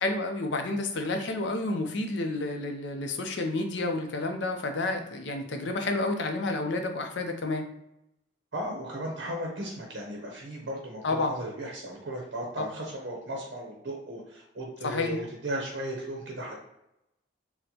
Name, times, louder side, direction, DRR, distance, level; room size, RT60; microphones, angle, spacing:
voice 1, 0.0-7.7 11.0-11.3 12.6-12.7 14.8-15.2, left 2 dB, 65° left, 5 dB, 0.5 m, -30 dB
voice 2, 8.5-16.5, right 1 dB, 60° right, -1 dB, 0.7 m, -36 dB
4.2 x 2.1 x 2.8 m, 0.85 s
head